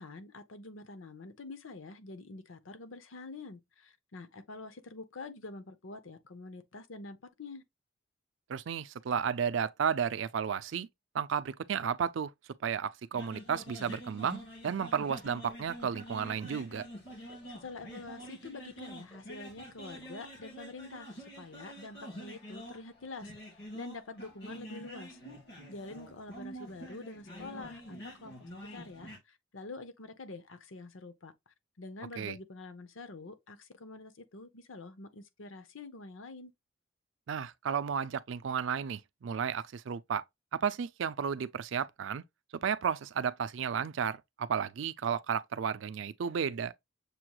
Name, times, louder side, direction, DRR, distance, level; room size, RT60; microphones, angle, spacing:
voice 1, 0.0-7.6 17.5-25.2 25.7-31.3 31.8-36.5, left 3 dB, 80° left, 0.8 m, -46 dB
voice 2, 8.5-10.9 11.1-12.3 12.6-16.9 32.2-32.4 37.3-40.2 40.5-42.2 42.6-46.7, right 7 dB, 70° right, 0.4 m, -33 dB
sound 1, 13.1-29.2, equal, 55° left, 2.0 m, -47 dB
sound 2, 15.2-15.7 15.9-16.5 16.8-17.5 17.7-18.3 18.6-19.3 19.6-19.8 20.0-20.1 20.5-20.6, equal, 5° right, 1.2 m, -61 dB
6.8 x 3.0 x 2.3 m
head